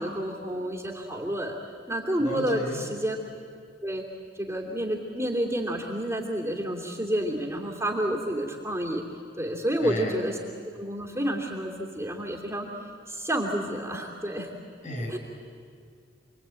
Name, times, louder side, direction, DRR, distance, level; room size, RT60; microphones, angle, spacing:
voice 1, 0.0-1.5 1.9-3.2 3.8-4.0 4.4-9.0 9.4-10.4 10.8-12.7 13.1-14.5 15.1-15.2, right 1 dB, 15° right, -1 dB, 2.9 m, -29 dB
voice 2, 2.2-2.8 9.8-10.3 14.8-15.2, equal, 45° left, 1 dB, 8.0 m, -34 dB
29.0 x 22.5 x 9.1 m, 2.2 s
head